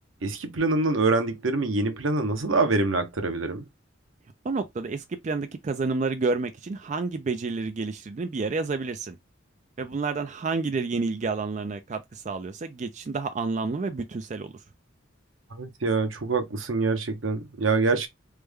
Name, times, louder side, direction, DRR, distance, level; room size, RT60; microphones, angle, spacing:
voice 1, 0.2-3.6 15.5-18.1, right 3 dB, 90° right, 0.8 m, -25 dB
voice 2, 4.4-9.2 9.8-14.5, right 4 dB, 40° right, 0.4 m, -29 dB
3.2 x 2.2 x 3.4 m
head